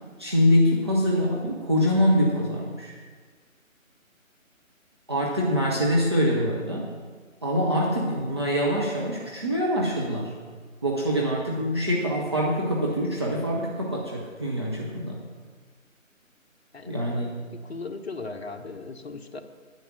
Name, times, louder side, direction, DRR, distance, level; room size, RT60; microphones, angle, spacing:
voice 1, 0.2-3.0 5.1-6.9 7.4-10.3 10.8-15.2 16.9-17.3, equal, 20° right, -4 dB, 0.7 m, -24 dB
voice 2, 16.7-19.4, left 3 dB, 50° left, 6 dB, 1.1 m, -38 dB
9.8 x 9.7 x 6.0 m, 1.5 s
figure-of-eight pair, 150°, 41 cm